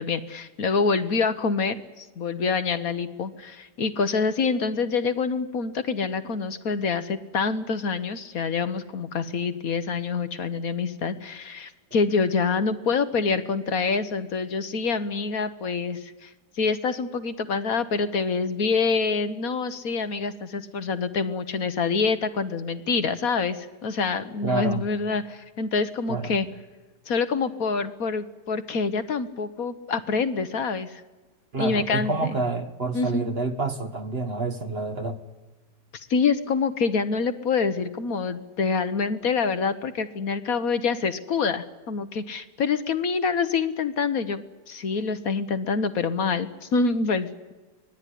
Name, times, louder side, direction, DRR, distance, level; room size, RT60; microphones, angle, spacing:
voice 1, 0.0-26.5 27.1-31.0 31.6-32.4 32.9-33.2 35.9-47.5, left 5 dB, 60° left, 11 dB, 1.4 m, -26 dB
voice 2, 24.4-24.8 26.1-26.4 31.5-35.2, right 3 dB, 40° right, 8 dB, 1.4 m, -28 dB
24.5 x 18.5 x 10.0 m, 1.2 s
omnidirectional pair, 1.9 m